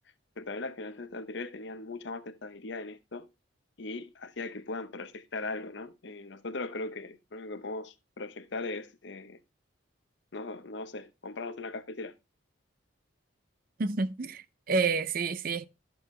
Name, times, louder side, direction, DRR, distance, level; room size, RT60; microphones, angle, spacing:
voice 1, 0.4-3.3 3.8-9.4 10.3-12.1, left 3 dB, 60° left, 0.8 m, -39 dB
voice 2, 13.8-15.7, right 4 dB, 45° right, 0.5 m, -29 dB
12.0 x 6.9 x 3.2 m
head